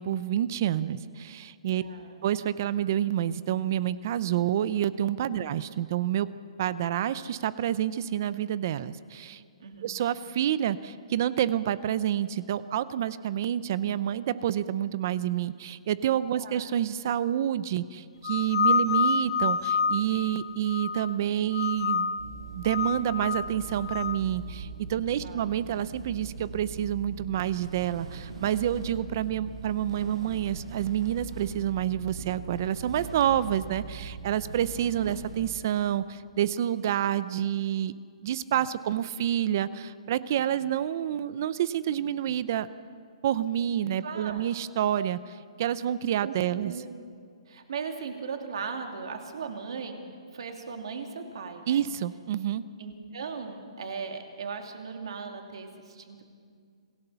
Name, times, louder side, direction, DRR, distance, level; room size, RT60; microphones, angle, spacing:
voice 1, 0.0-1.8 2.2-6.3 6.6-9.4 9.8-22.2 22.5-37.9 38.2-42.7 43.2-46.7 51.7-52.6, right 11 dB, 30° right, 16 dB, 0.5 m, -28 dB
voice 2, 1.7-2.2 9.6-10.0 16.4-16.7 25.2-25.4 44.0-44.4 46.2-46.3 46.6-47.0 47.5-51.9 52.8-56.3, right 5 dB, 55° right, 4 dB, 2.7 m, -38 dB
sound 1, 18.2-21.1 21.5-22.3 22.6-24.2, left 5 dB, 70° left, 0.6 m, -28 dB
sound 2, 22.2-35.5, right 4 dB, 75° right, 6.4 m, -41 dB
27.0 x 17.5 x 6.9 m, 2.1 s
hypercardioid pair, 175°, 3 cm